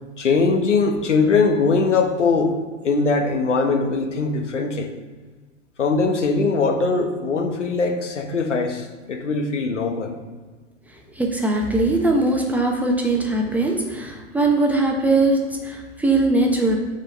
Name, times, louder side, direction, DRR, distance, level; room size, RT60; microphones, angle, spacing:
voice 1, 0.2-2.6 2.8-4.9 5.8-10.2, left 4 dB, 70° left, 5 dB, 1.3 m, -21 dB
voice 2, 11.1-16.8, right 2 dB, 5° right, 0 dB, 1.0 m, -20 dB
7.8 x 4.5 x 5.3 m, 1.4 s
figure-of-eight pair, 105°, 37 cm